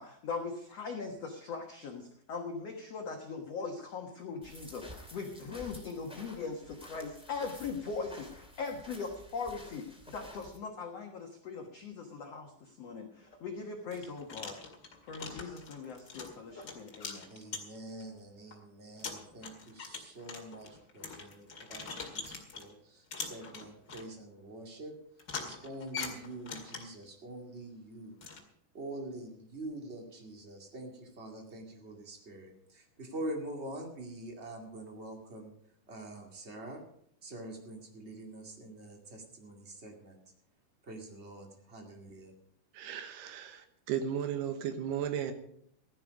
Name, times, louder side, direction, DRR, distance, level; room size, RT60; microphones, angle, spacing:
voice 1, 0.0-14.6 15.0-17.2, left 4 dB, 70° left, 2 dB, 1.5 m, -40 dB
sound 1, 4.4-10.6, left 1 dB, ahead, 1.6 m, -51 dB
sound 2, 13.2-13.4 13.9-18.0 18.5-18.6 19.0-22.7 23.1-24.1 25.2-27.0 28.2-28.4, left 5 dB, 35° left, 1.9 m, -43 dB
voice 2, 17.3-24.9 25.4-28.2 28.7-35.5 35.9-36.8 37.2-40.2 40.8-42.3, right 1 dB, 30° right, 2 dB, 1.3 m, -45 dB
voice 3, 42.8-45.3, right 9 dB, 75° right, 8 dB, 3.0 m, -35 dB
15.5 x 12.0 x 5.1 m, 0.70 s
omnidirectional pair, 4.9 m